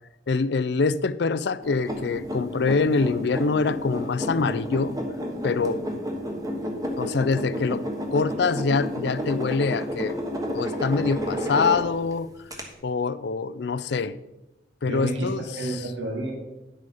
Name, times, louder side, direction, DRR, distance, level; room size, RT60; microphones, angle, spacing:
voice 1, 0.3-4.9 5.4-5.8 7.0-7.8 8.1-10.2 10.5-12.3 12.8-14.1 14.8-15.8, left 4 dB, 60° left, 16 dB, 0.4 m, -25 dB
sound 1, 1.6-12.1 12.5-12.6, equal, 20° right, 1.3 m, -31 dB
voice 2, 14.8-16.3, right 2 dB, 75° right, 1 dB, 1.7 m, -30 dB
9.9 x 6.6 x 5.4 m, 0.99 s
head